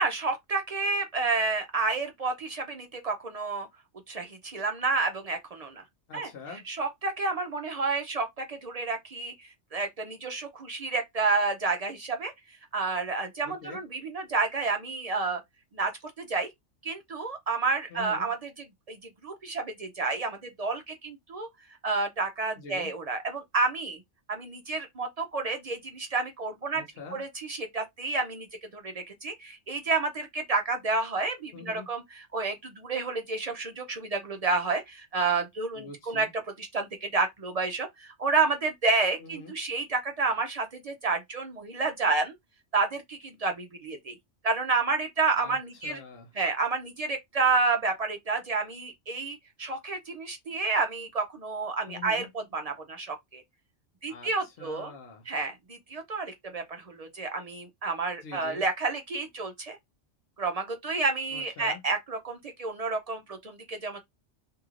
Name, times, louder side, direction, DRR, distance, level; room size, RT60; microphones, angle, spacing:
voice 1, 0.0-3.7 4.1-5.8 6.1-6.3 6.7-12.3 12.7-15.4 15.7-15.9 16.2-16.5 16.8-18.5 18.9-19.0 19.2-21.5 21.8-24.0 24.3-26.8 27.1-28.5 28.7-36.3 36.6-42.3 42.7-44.1 44.4-46.0 46.4-52.3 52.5-53.4 54.0-54.9 55.3-59.8 60.4-64.0, right 3 dB, 55° right, 0.4 m, -30 dB
voice 2, 6.1-6.6 13.4-13.8 17.9-18.3 22.6-22.9 26.7-27.2 31.5-31.9 35.7-36.3 39.2-39.5 45.3-45.6 45.8-46.3 51.9-52.3 54.1-55.3 58.2-58.6 61.3-61.8, left 4 dB, 60° left, 0.9 m, -44 dB
3.0 x 2.7 x 2.4 m
omnidirectional pair, 1.3 m